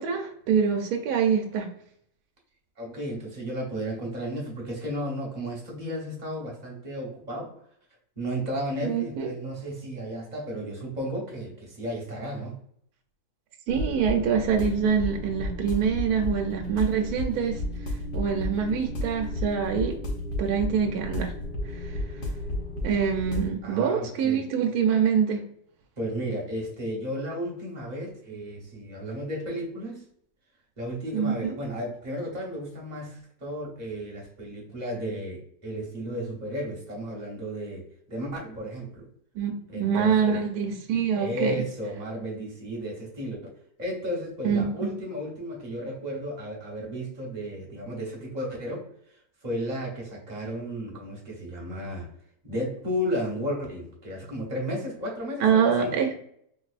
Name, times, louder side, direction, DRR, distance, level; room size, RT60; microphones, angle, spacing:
voice 1, 0.0-1.7 8.8-9.3 13.7-17.6 18.1-20.0 20.4-21.3 21.8-22.0 22.8-25.4 31.1-31.6 39.3-41.6 44.4-44.7 55.4-56.1, right 7 dB, 70° right, 3 dB, 1.1 m, -25 dB
voice 2, 2.8-7.5 8.2-12.6 23.6-24.4 26.0-30.0 30.8-39.1 39.7-40.4 41.1-43.4 43.8-52.1 52.4-56.0, equal, 30° right, -2 dB, 0.9 m, -33 dB
sound 1, 13.7-23.5, left 1 dB, 50° left, 0.6 m, -33 dB
4.0 x 2.6 x 2.4 m, 0.69 s
omnidirectional pair, 1.7 m